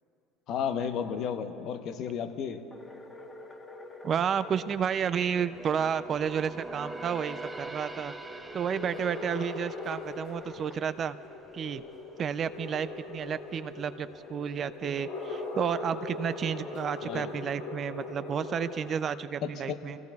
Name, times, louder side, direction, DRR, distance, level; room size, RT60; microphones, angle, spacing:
voice 1, 0.5-2.6 17.0-17.3 19.4-19.8, left 7 dB, 60° left, 8 dB, 0.9 m, -33 dB
sound 1, 1.6-19.0, left 3 dB, 80° left, 2.7 m, -42 dB
sound 2, 2.7-4.9 8.7-10.9, left 3 dB, 20° left, 1.2 m, -47 dB
voice 2, 4.0-8.1 8.5-11.2 11.5-11.8 12.2-20.0, right 7 dB, 45° right, 13 dB, 0.4 m, -31 dB
sound 3, 4.5-11.9 12.3-12.5 13.1-13.8 14.1-14.2, right 2 dB, 10° right, 0.9 m, -44 dB
25.0 x 16.5 x 2.3 m, 2.9 s
hypercardioid pair, 80°, 0 cm